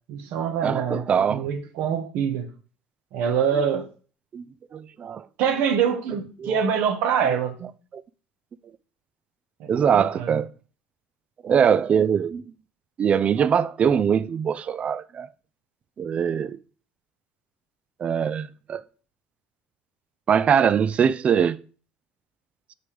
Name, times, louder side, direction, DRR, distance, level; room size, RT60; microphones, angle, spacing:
voice 1, 0.1-2.5 3.1-3.8 5.4-7.7 9.6-10.4, right 7 dB, 70° right, 1.4 m, -25 dB
voice 2, 0.6-1.4 3.5-3.6 4.3-4.4 4.7-5.2 6.4-6.6 7.9-8.0 9.7-10.5 11.4-12.4 13.0-15.3 16.0-16.6 18.0-18.8 20.3-21.6, right 7 dB, 40° right, 0.4 m, -22 dB
7.1 x 6.6 x 3.4 m
supercardioid pair, 90°, 3 cm